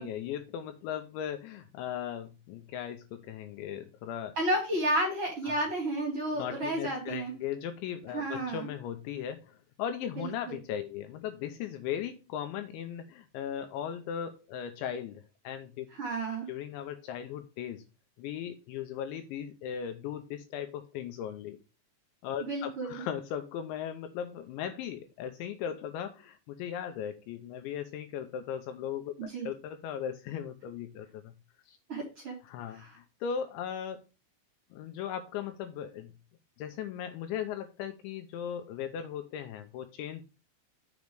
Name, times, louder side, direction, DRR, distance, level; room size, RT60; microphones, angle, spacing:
voice 1, 0.0-4.3 5.4-5.6 6.3-15.9 16.5-17.8 18.2-21.6 22.2-31.3 31.7-31.8 32.4-34.0 34.7-36.1 36.6-40.2, left 9 dB, 80° left, 7 dB, 2.8 m, -38 dB
voice 2, 4.4-7.3 8.1-8.7 10.2-10.6 15.9-16.5 22.4-23.0 29.2-29.5 31.9-32.4 32.7-32.9, right 1 dB, 35° right, -2 dB, 2.7 m, -32 dB
7.2 x 5.3 x 4.6 m, 0.30 s
omnidirectional pair, 5.7 m